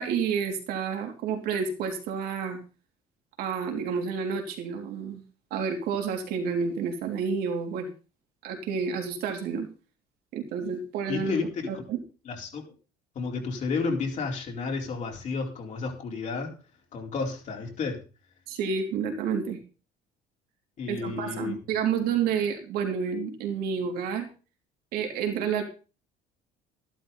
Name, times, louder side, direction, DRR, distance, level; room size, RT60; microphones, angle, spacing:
voice 1, 0.0-2.6 3.4-5.2 5.5-7.9 8.4-9.7 10.3-11.4 11.7-12.0 18.5-19.6 20.9-24.3 24.9-25.6, right 6 dB, 75° right, 3 dB, 3.4 m, -29 dB
voice 2, 11.1-11.7 12.2-12.7 13.1-16.5 16.9-18.0 20.8-21.6, left 4 dB, 50° left, 0 dB, 4.3 m, -31 dB
12.5 x 11.5 x 4.1 m, 0.35 s
cardioid pair, 110°, 16 cm